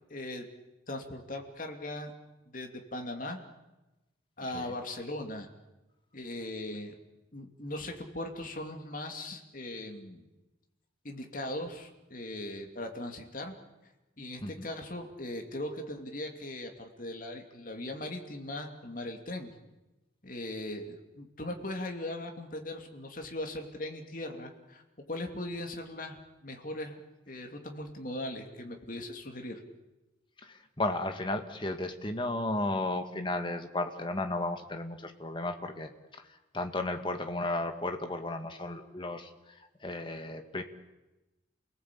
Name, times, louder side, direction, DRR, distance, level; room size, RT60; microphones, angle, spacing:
voice 1, 0.1-0.4 0.9-2.1 2.5-3.4 4.4-5.5 6.1-6.9 7.3-10.2 11.0-13.5 14.2-19.5 20.2-24.8 25.1-27.0 27.3-29.6, left 1 dB, 45° left, 3 dB, 2.8 m, -39 dB
voice 2, 30.4-40.6, left 2 dB, 25° left, 6 dB, 1.8 m, -34 dB
29.0 x 18.5 x 8.6 m, 1.0 s
head